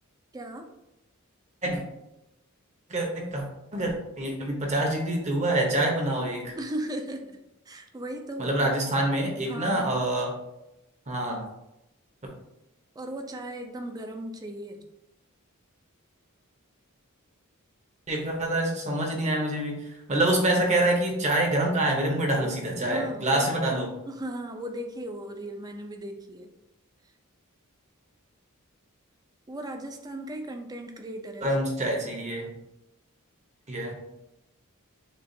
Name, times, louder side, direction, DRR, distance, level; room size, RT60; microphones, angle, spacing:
voice 1, 0.3-0.7 6.6-7.4 7.7-8.6 9.4-9.9 13.0-14.8 22.8-26.5 29.5-31.6, right 1 dB, 20° right, 4 dB, 0.4 m, -37 dB
voice 2, 2.9-3.4 3.7-6.6 8.4-10.4 11.1-11.4 18.1-19.7 20.1-23.9 31.4-32.5 33.7-34.0, right 1 dB, 35° right, 0 dB, 0.9 m, -26 dB
6.7 x 2.4 x 2.6 m, 0.90 s
head